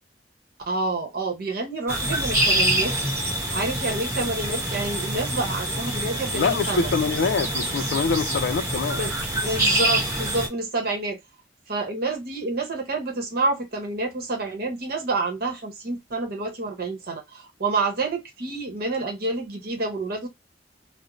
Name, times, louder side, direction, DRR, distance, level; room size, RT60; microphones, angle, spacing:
voice 1, 0.7-2.9 3.5-6.9 9.0-11.2 11.7-20.3, right 3 dB, 55° right, 0.9 m, -28 dB
sound 1, 1.9-10.5, right 1 dB, 15° right, 0.9 m, -26 dB
voice 2, 6.3-9.0, left 5 dB, 70° left, 0.4 m, -25 dB
2.5 x 2.0 x 2.9 m
head